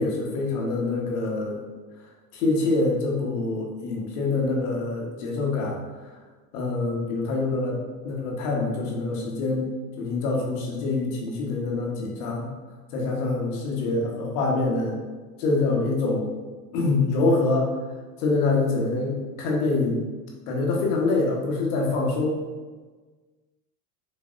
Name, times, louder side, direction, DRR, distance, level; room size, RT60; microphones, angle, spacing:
voice 1, 0.0-1.6 2.3-5.8 6.5-7.8 8.0-9.7 10.0-12.5 12.9-15.0 15.4-16.3 16.7-17.7 18.2-20.0 20.5-22.4, left 3 dB, 70° left, -1 dB, 1.3 m, -25 dB
5.3 x 3.3 x 2.6 m, 1.4 s
hypercardioid pair, 90°, 46 cm